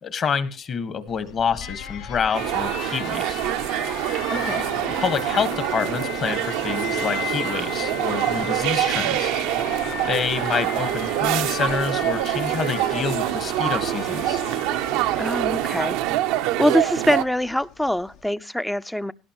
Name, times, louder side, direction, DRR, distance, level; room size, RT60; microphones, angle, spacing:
voice 1, 0.0-3.4 4.8-9.3 10.1-14.4, left 6 dB, 45° left, 11 dB, 1.5 m, -27 dB
Alarm, 1.1-18.3, left 8 dB, 70° left, 1.3 m, -36 dB
sound 1, 2.3-17.2, right 14 dB, 75° right, 0.6 m, -25 dB
sound 2, 4.3-15.7, left 6 dB, 90° left, 1.8 m, -39 dB
voice 2, 4.3-4.6 15.2-19.1, left 1 dB, 5° left, 15 dB, 0.5 m, -24 dB
17.5 x 11.5 x 3.0 m, 0.31 s
supercardioid pair, 95°, 0 cm